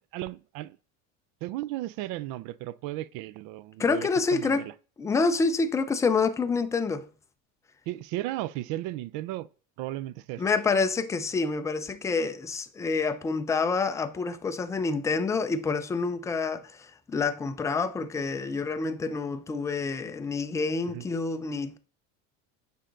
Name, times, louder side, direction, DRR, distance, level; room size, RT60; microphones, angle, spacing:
voice 1, 0.1-0.8 1.4-4.7 7.9-9.5 9.8-10.5 20.8-21.1, right 16 dB, 55° right, 0.5 m, -35 dB
voice 2, 3.8-4.7 5.0-7.1 10.4-21.8, left 4 dB, 10° left, 0.3 m, -27 dB
6.5 x 5.1 x 3.8 m
supercardioid pair, 120°, 39 cm